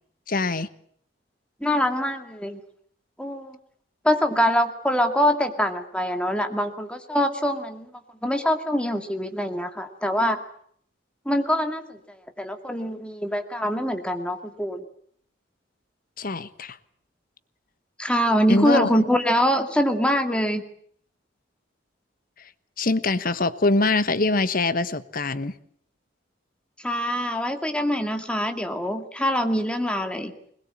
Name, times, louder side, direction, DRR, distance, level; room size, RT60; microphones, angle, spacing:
voice 1, 0.3-0.7 16.2-16.8 18.5-18.9 22.8-25.5, left 2 dB, 50° left, 13 dB, 1.2 m, -23 dB
voice 2, 1.6-2.6 3.2-3.6 4.0-7.9 8.2-10.4 11.3-14.8 18.0-20.6 26.8-30.3, equal, 5° left, 6 dB, 2.3 m, -24 dB
21.5 x 20.5 x 8.6 m, 0.63 s
head